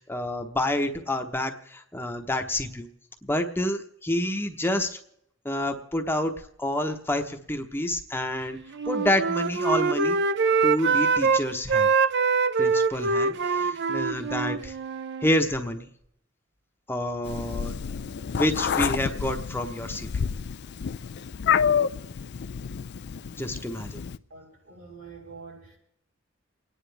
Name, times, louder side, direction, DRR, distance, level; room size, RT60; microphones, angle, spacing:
voice 1, 0.0-2.9 3.2-5.0 5.4-6.3 6.6-8.6 8.9-10.2 10.6-11.9 12.6-14.7 15.2-15.9 16.9-17.7 18.4-20.3 23.4-24.0, left 1 dB, 10° left, 4 dB, 1.0 m, -28 dB
Wind instrument woodwind instrument, 8.7-11.4 11.7-15.3, right 4 dB, 55° right, 0.6 m, -24 dB
Meow, 17.3-24.2, left 7 dB, 55° left, 0.4 m, -29 dB
voice 2, 24.3-25.8, right 4 dB, 80° right, -3 dB, 6.5 m, -45 dB
29.0 x 10.0 x 3.4 m, 0.74 s
head